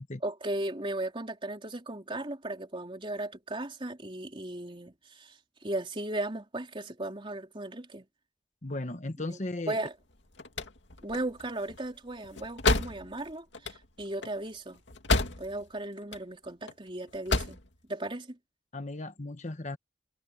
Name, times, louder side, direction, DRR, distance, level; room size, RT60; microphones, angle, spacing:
voice 1, 0.2-5.4 5.6-8.0 9.3-9.4 9.7-9.9 11.0-14.8 15.4-17.6 17.9-18.4, right 1 dB, 30° right, 3.4 m, -36 dB
voice 2, 8.6-9.8 18.7-19.8, left 2 dB, 40° left, 1.3 m, -36 dB
sound 1, 10.1-15.7 16.0-16.7 17.1-17.7, left 3 dB, 75° left, 2.4 m, -31 dB
head